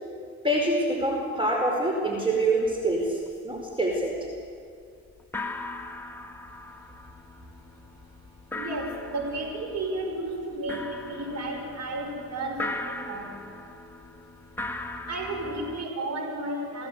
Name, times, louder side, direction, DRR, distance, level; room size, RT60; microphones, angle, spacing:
voice 1, 0.4-4.2, right 1 dB, 15° right, -1 dB, 4.9 m, -25 dB
sound 1, 2.6-2.8 3.0-3.6 3.9-4.5 4.8-4.9 5.2-15.9, left 2 dB, 5° left, 2.1 m, -39 dB
voice 2, 8.5-13.5 15.1-16.9, right 2 dB, 60° right, 3 dB, 5.6 m, -33 dB
29.0 x 16.5 x 8.2 m, 2.3 s
cardioid pair, 90°, 30 cm